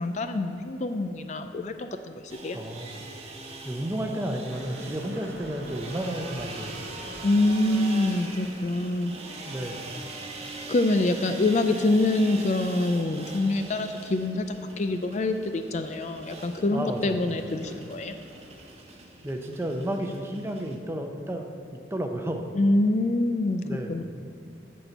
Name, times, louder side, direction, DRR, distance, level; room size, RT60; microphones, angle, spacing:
voice 1, 0.0-2.6 7.2-9.1 10.7-14.4 14.8-18.1 22.6-24.0, left 2 dB, 40° left, 8 dB, 0.4 m, -25 dB
sound 1, 2.3-20.8, right 3 dB, 35° right, 1.0 m, -42 dB
voice 2, 2.5-3.1 3.6-6.9 9.5-9.8 16.7-17.2 19.2-21.5 21.9-22.5 23.6-24.0, right 1 dB, 15° right, 3 dB, 0.7 m, -32 dB
sound 2, 4.5-18.7, right 1 dB, 85° right, 1.3 m, -47 dB
11.0 x 4.3 x 8.0 m, 2.6 s
head